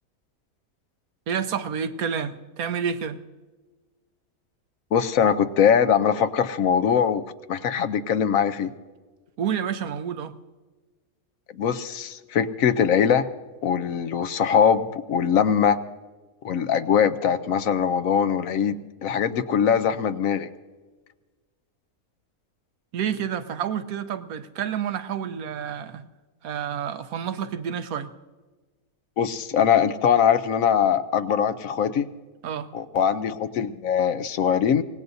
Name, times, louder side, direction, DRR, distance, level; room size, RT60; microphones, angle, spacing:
voice 1, 1.3-3.2 9.4-10.3 22.9-26.0 26.4-28.1 32.4-32.7, right 8 dB, 80° right, 10 dB, 1.2 m, -29 dB
voice 2, 4.9-7.2 7.5-8.7 11.5-13.3 13.6-15.8 16.4-18.8 19.0-20.5 29.2-32.1 32.7-34.8, left 8 dB, 70° left, 11 dB, 1.1 m, -22 dB
24.5 x 18.0 x 2.7 m, 1.3 s
omnidirectional pair, 1.5 m